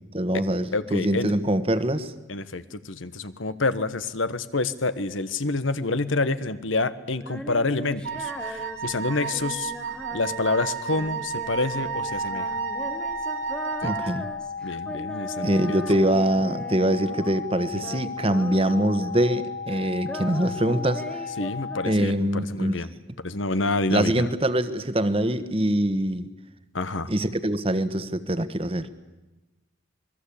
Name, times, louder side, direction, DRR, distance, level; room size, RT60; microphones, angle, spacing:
voice 1, 0.0-2.1 13.8-14.3 15.4-21.3 21.8-22.7 23.9-26.3 27.1-28.9, right 1 dB, 30° right, 12 dB, 1.3 m, -24 dB
voice 2, 0.7-1.3 2.3-9.7 10.1-12.6 13.8-13.9 14.6-15.8 17.7-17.8 21.4-22.9 23.2-24.3 26.7-27.1, left 3 dB, 90° left, 13 dB, 1.4 m, -28 dB
Female singing, 7.2-17.5 17.8-19.4 19.7-22.4, equal, 5° left, 1.1 m, -40 dB
Wind instrument woodwind instrument, 8.0-14.1, right 6 dB, 75° right, 2.7 m, -32 dB
sound 1, 11.9-21.9, left 6 dB, 40° left, 1.5 m, -35 dB
27.0 x 21.0 x 8.6 m, 1.1 s
head